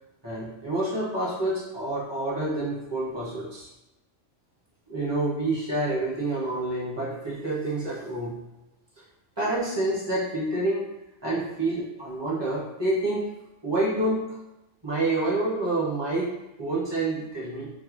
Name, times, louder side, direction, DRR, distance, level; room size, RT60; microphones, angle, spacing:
voice 1, 0.2-3.7 4.9-8.4 9.4-10.9 11.2-13.3 13.6-14.3 14.8-17.7, right 2 dB, 25° right, -7 dB, 0.9 m, -28 dB
4.0 x 2.2 x 3.0 m, 0.96 s
omnidirectional pair, 1.3 m